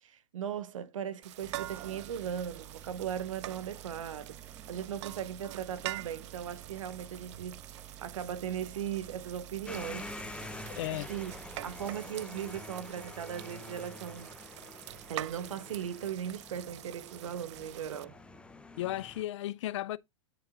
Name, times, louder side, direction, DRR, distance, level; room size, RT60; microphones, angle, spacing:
voice 1, 0.0-4.4 4.7-10.1 10.9-11.3 11.6-14.3 15.1-18.2, right 9 dB, 75° right, 0.8 m, -38 dB
sound 1, 1.2-18.0, right 15 dB, 60° right, 0.4 m, -46 dB
sound 2, 1.4-11.9, right 9 dB, 10° right, 1.2 m, -51 dB
sound 3, 9.7-19.2, left 2 dB, 5° left, 0.6 m, -47 dB
voice 2, 10.7-11.1 18.8-20.0, left 14 dB, 65° left, 0.5 m, -35 dB
9.1 x 6.0 x 2.4 m
hypercardioid pair, 115°, 17 cm